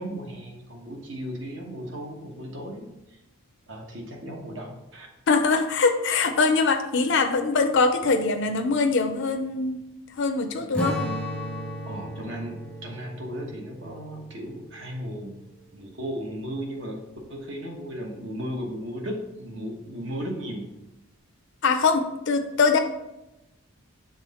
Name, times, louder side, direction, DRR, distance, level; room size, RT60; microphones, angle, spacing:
voice 1, 0.0-3.2 3.7-5.1 11.9-15.4 15.7-17.0 17.3-20.7, equal, 55° right, 1 dB, 1.1 m, -35 dB
voice 2, 5.3-9.8 10.2-11.0 21.6-22.8, left 4 dB, 55° left, 6 dB, 0.4 m, -22 dB
Strum, 10.7-15.4, equal, 5° left, 0.6 m, -34 dB
6.2 x 3.7 x 4.2 m, 0.92 s
head